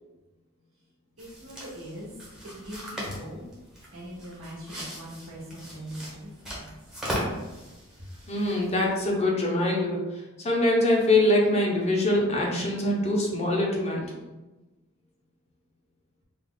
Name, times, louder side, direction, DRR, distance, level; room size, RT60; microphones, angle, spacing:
sound 1, 1.2-9.1, equal, 5° right, 0.8 m, -39 dB
voice 1, 1.2-2.2 2.4-3.4 3.9-6.8, equal, 70° right, -4 dB, 1.1 m, -41 dB
voice 2, 8.3-14.3, left 1 dB, 30° left, -2 dB, 0.6 m, -24 dB
3.3 x 2.3 x 3.7 m, 1.1 s
head